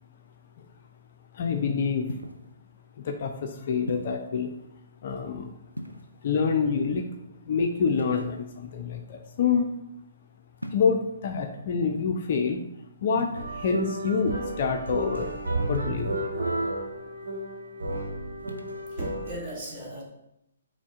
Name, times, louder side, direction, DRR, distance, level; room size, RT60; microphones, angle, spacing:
voice 1, 1.3-2.1 3.0-4.5 5.0-5.5 6.2-7.1 7.5-9.7 10.7-12.6 13.0-15.4 15.7-16.3, left 5 dB, 40° left, 4 dB, 0.4 m, -27 dB
sound 1, 2.1-2.5 3.9-4.3 5.7-6.3 8.0-8.7 10.6-11.1 13.2-13.4 15.7-16.3 18.4-18.8, equal, 90° right, 0.5 m, -39 dB
sound 2, 13.3-19.3, right 2 dB, 70° right, 0.8 m, -32 dB
voice 2, 18.9-20.0, right 1 dB, 25° right, -4 dB, 1.3 m, -37 dB
6.0 x 2.1 x 3.5 m, 0.82 s
figure-of-eight pair, 130°, 0 cm